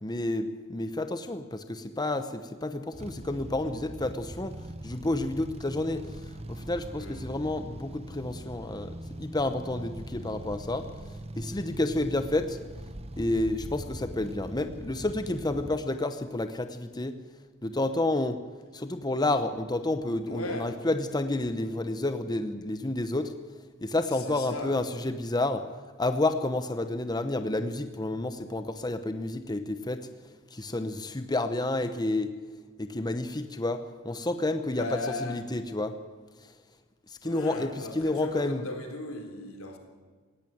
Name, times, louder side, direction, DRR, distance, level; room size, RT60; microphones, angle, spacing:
voice 1, 0.0-4.5 4.8-10.9 11.4-12.6 13.2-17.2 17.6-18.4 18.7-23.3 23.8-25.6 26.0-30.1 30.5-32.3 32.8-35.9 36.4-36.5 37.1-38.7, left 2 dB, 20° left, 0.9 m, -30 dB
sound 1, 2.9-15.8, right 1 dB, 30° right, 1.0 m, -42 dB
voice 2, 20.3-20.8 24.1-24.8 34.7-35.4 37.2-39.8, left 2 dB, 85° left, 3.7 m, -37 dB
17.5 x 17.0 x 9.4 m
head